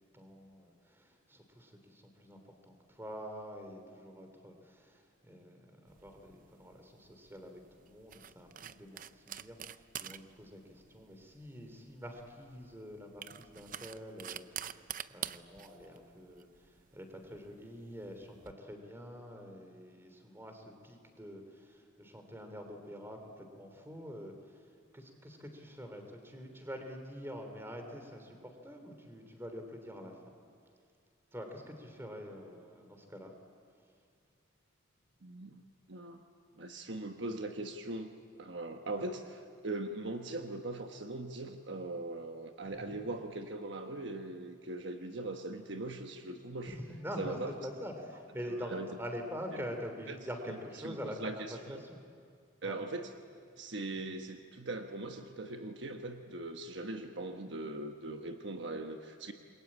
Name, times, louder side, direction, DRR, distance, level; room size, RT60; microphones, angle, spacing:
voice 1, 0.1-2.4 2.6-7.5 7.8-24.6 24.9-28.4 28.6-30.1 31.3-33.3 38.8-39.1 42.6-43.0 46.7-52.0 52.6-52.8, equal, 10° right, 5 dB, 3.3 m, -46 dB
sound 1, 5.9-18.5, right 10 dB, 40° right, 0.6 m, -47 dB
voice 2, 35.2-35.6 35.9-36.2 36.5-38.1 38.4-46.8 47.2-47.5 48.6-48.9 49.5-49.6 50.1-50.2 50.5-51.8 52.6-53.1 53.6-59.3, right 2 dB, 60° right, 5 dB, 1.2 m, -40 dB
28.0 x 22.0 x 8.7 m, 2.3 s
head